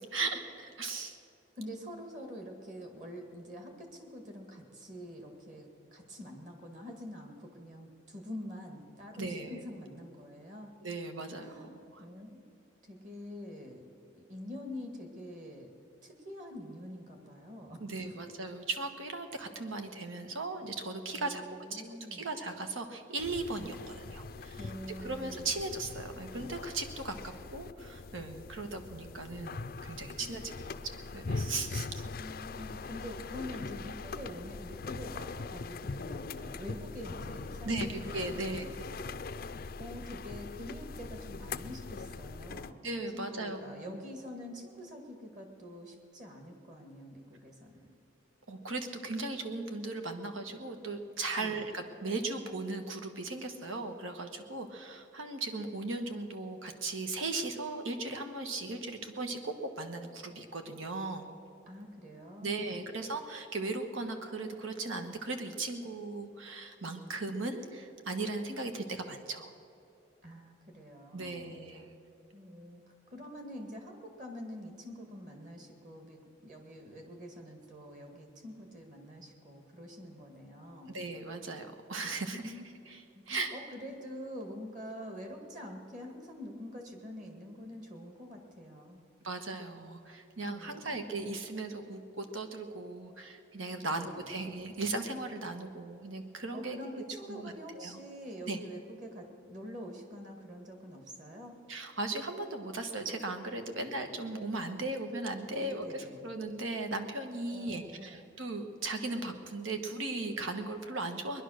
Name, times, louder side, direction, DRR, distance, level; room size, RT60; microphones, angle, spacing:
voice 1, 0.1-1.2 9.2-9.6 10.8-11.5 11.9-12.0 17.8-21.4 21.7-21.8 22.1-24.7 25.0-30.4 31.1-32.0 37.6-38.6 42.8-43.8 48.5-61.2 62.4-69.5 71.1-71.9 80.9-82.5 82.9-83.0 83.3-83.5 89.2-96.8 97.3-98.0 98.5-98.6 101.7-111.4, right 2 dB, 90° right, 6 dB, 1.4 m, -37 dB
voice 2, 1.6-10.7 11.4-12.4 12.8-13.8 14.1-15.7 16.0-18.2 21.1-22.3 24.6-25.6 30.2-30.3 31.5-31.9 32.2-38.7 39.8-42.8 43.1-47.9 51.4-51.6 61.7-62.9 70.2-71.6 72.3-81.0 82.3-82.6 83.1-89.0 90.4-91.0 93.8-94.3 96.5-101.6 105.6-106.3 107.5-108.2, equal, 40° right, 3 dB, 1.9 m, -46 dB
sound 1, 23.2-42.7, left 4 dB, 45° left, 0.4 m, -42 dB
20.5 x 11.0 x 6.5 m, 2.6 s
head